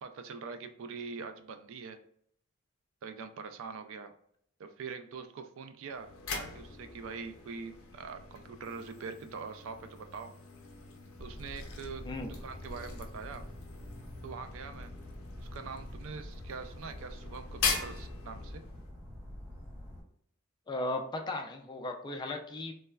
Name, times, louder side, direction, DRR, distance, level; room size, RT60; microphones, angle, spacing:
voice 1, 0.0-2.0 3.0-4.1 4.6-10.3 11.2-13.5 14.2-14.9 15.4-18.6, right 5 dB, 65° right, 9 dB, 0.3 m, -43 dB
sound 1, 5.9-18.9, left 5 dB, 70° left, 0.6 m, -41 dB
sound 2, 11.2-20.0, left 1 dB, 5° right, 1.2 m, -46 dB
voice 2, 12.0-12.4 20.7-22.7, left 2 dB, 20° left, 3 dB, 0.3 m, -36 dB
3.2 x 2.1 x 2.2 m, 0.66 s
head